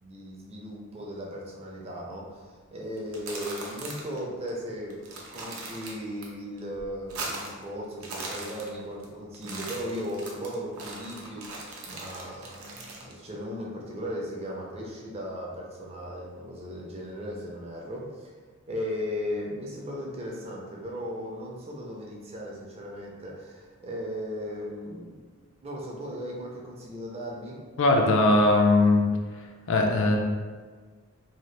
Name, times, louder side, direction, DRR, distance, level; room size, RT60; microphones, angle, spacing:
voice 1, 0.0-18.3 18.7-25.2 25.6-27.6, equal, 25° right, -2 dB, 0.5 m, -37 dB
sound 1, 3.0-4.2 4.5-4.6 4.9-6.3 6.6-7.6 7.9-9.1 9.3-13.1, right 2 dB, 75° right, 0.6 m, -39 dB
voice 2, 27.8-29.0 29.7-30.2, left 2 dB, 55° left, 1 dB, 0.4 m, -20 dB
2.8 x 2.3 x 3.2 m, 1.5 s
head